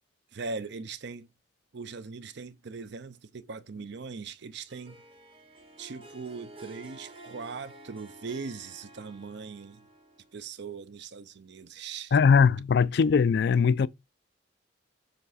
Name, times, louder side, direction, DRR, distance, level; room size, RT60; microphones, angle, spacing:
voice 1, 0.3-1.3 1.7-5.0 5.8-9.8 10.3-12.2, right 4 dB, 65° right, 0.6 m, -40 dB
Harp, 4.7-10.5, right 2 dB, 30° right, 0.8 m, -50 dB
voice 2, 12.1-13.9, left 6 dB, 60° left, 0.4 m, -21 dB
6.8 x 3.5 x 4.1 m
head